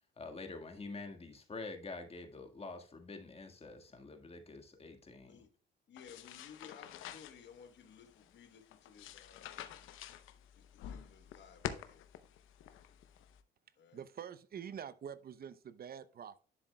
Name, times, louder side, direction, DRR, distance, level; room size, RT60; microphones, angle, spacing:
voice 1, 0.2-5.4, left 3 dB, 30° left, 1.7 m, -47 dB
voice 2, 5.9-9.6 10.6-12.0 13.8-14.0, left 7 dB, 65° left, 1.2 m, -57 dB
sound 1, 6.0-13.4, left 10 dB, 90° left, 0.7 m, -48 dB
voice 3, 13.9-16.4, right 8 dB, 50° right, 0.6 m, -46 dB
10.5 x 7.5 x 2.2 m
cardioid pair, 90°, 20 cm